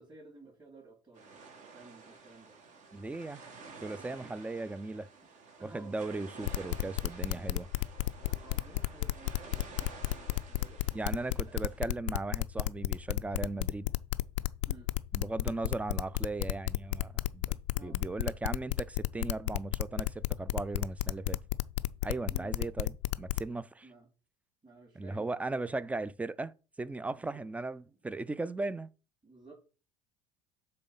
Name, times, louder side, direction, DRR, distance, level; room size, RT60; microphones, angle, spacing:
voice 1, 0.0-2.6 4.1-4.9 5.6-6.0 8.4-11.1 11.3-11.6 14.7-15.2 17.7-18.0 22.3-22.6 23.8-24.1 24.6-25.7 27.1-27.4 27.9-28.0 29.2-29.5, right 3 dB, 25° right, 3.5 m, -55 dB
sound 1, 1.1-11.8, right 4 dB, 45° right, 1.6 m, -51 dB
voice 2, 2.9-3.4 3.8-5.1 5.6-7.7 10.9-13.9 15.1-21.4 22.0-23.9 25.0-26.5 26.8-28.9, right 2 dB, 10° right, 0.4 m, -37 dB
sound 2, 6.5-23.4, left 17 dB, 70° left, 0.4 m, -31 dB
7.5 x 3.3 x 5.5 m
hypercardioid pair, 70°, 17 cm